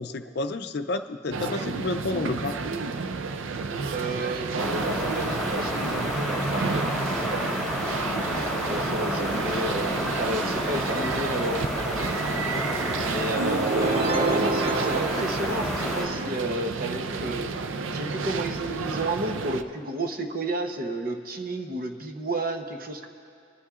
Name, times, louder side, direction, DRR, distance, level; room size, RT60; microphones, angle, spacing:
voice 1, 0.0-2.6, left 3 dB, 55° left, 7 dB, 0.5 m, -30 dB
sound 1, 1.3-19.6, right 4 dB, 85° right, 0.5 m, -31 dB
voice 2, 3.9-7.9 8.6-12.1 13.0-17.5 17.9-23.1, right 1 dB, 45° right, 4 dB, 0.9 m, -32 dB
sound 2, 4.6-16.1, left 1 dB, ahead, 1.6 m, -30 dB
sound 3, 13.4-16.2, right 3 dB, 30° right, 0.4 m, -28 dB
27.5 x 11.5 x 2.4 m, 2.4 s
head